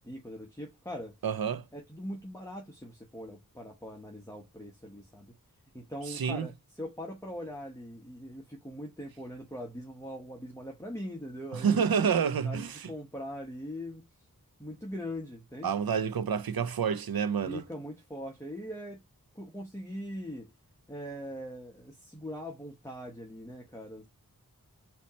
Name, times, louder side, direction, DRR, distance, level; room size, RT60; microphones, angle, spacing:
voice 1, 0.0-1.2 1.7-5.3 5.7-12.2 12.4-14.0 14.6-15.7 17.4-19.0 19.3-20.5 20.9-24.1, equal, 10° left, 1.1 m, -41 dB
voice 2, 1.2-1.6 6.1-6.5 11.5-12.9 15.6-17.6, right 7 dB, 80° right, 0.6 m, -28 dB
4.2 x 2.9 x 4.1 m
wide cardioid pair, 60°, 35 cm